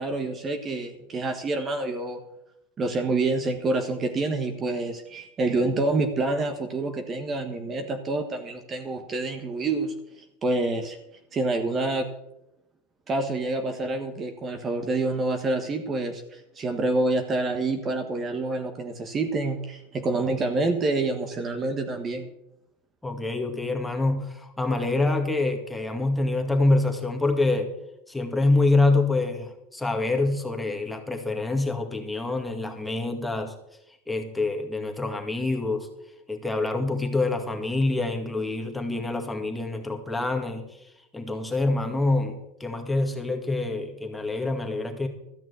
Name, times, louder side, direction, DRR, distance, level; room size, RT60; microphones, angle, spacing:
voice 1, 0.0-2.2 2.8-9.9 10.4-11.0 11.3-12.1 13.1-22.3, right 2 dB, 30° right, 6 dB, 1.4 m, -27 dB
voice 2, 23.0-27.7 28.1-33.5 34.1-35.9 36.3-40.7 41.1-45.1, left 2 dB, 5° left, 3 dB, 2.1 m, -26 dB
13.5 x 6.1 x 9.5 m, 0.84 s
supercardioid pair, 120°, 0 cm